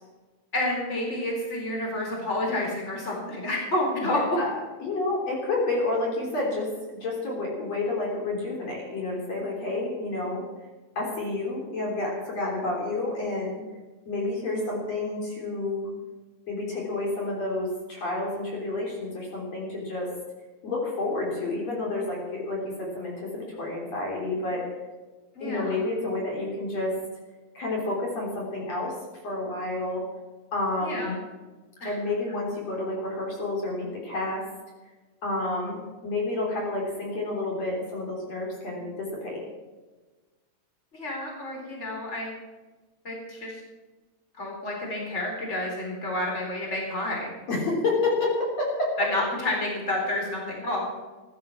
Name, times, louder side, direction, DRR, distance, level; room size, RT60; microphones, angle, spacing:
voice 1, 0.5-4.2 25.3-25.9 30.8-31.1 31.8-31.9 40.9-42.3 43.0-43.5 44.4-47.3 49.0-50.8, left 1 dB, 20° left, -1 dB, 4.4 m, -29 dB
voice 2, 4.0-4.5 4.8-10.4 11.0-13.6 14.1-15.9 16.5-20.1 20.6-24.7 25.4-26.9 27.5-28.9 29.2-30.0 30.5-31.2 31.8-34.4 35.2-39.4 47.5-48.9, left 2 dB, 55° left, -2 dB, 4.7 m, -29 dB
15.5 x 12.0 x 6.1 m, 1.2 s
omnidirectional pair, 3.5 m